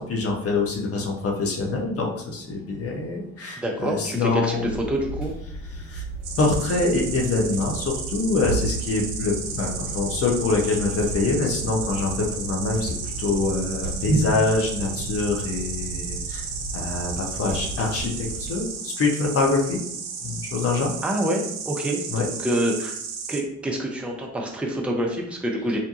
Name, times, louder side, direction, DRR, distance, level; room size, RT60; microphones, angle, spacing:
voice 1, 0.0-4.7 5.8-6.0 6.4-16.5 16.7-19.8 20.2-20.9 22.1-22.3, left 3 dB, 35° left, 0 dB, 0.8 m, -25 dB
voice 2, 3.6-5.3 21.0-23.0 23.3-25.8, right 1 dB, 5° right, 0 dB, 0.5 m, -27 dB
sound 1, 4.6-18.6, right 1 dB, 90° left, 1.1 m, -33 dB
Insect, 6.2-23.4, right 6 dB, 55° right, 0.5 m, -34 dB
2.7 x 2.2 x 2.7 m, 0.72 s
figure-of-eight pair, 45°, 39 cm